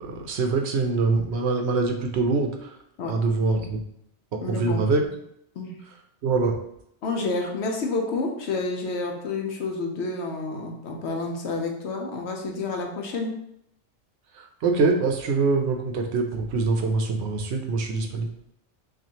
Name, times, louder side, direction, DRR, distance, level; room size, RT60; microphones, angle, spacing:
voice 1, 0.0-2.7 3.1-3.8 4.5-5.0 6.2-6.6 14.6-18.3, right 3 dB, 65° right, 4 dB, 0.8 m, -24 dB
voice 2, 4.4-4.8 5.6-5.8 7.0-13.4, left 3 dB, 70° left, 2 dB, 0.9 m, -29 dB
5.9 x 2.4 x 2.8 m, 0.74 s
omnidirectional pair, 1.3 m